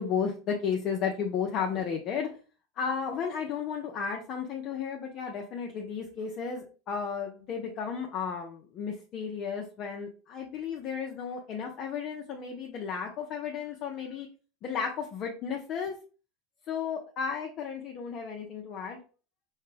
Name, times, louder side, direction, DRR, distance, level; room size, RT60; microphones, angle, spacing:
voice 1, 0.0-2.3 2.8-14.3 14.6-16.0 16.7-19.0, left 6 dB, 40° left, 1 dB, 0.7 m, -33 dB
5.5 x 2.3 x 3.3 m, 0.37 s
supercardioid pair, 135°, 0 cm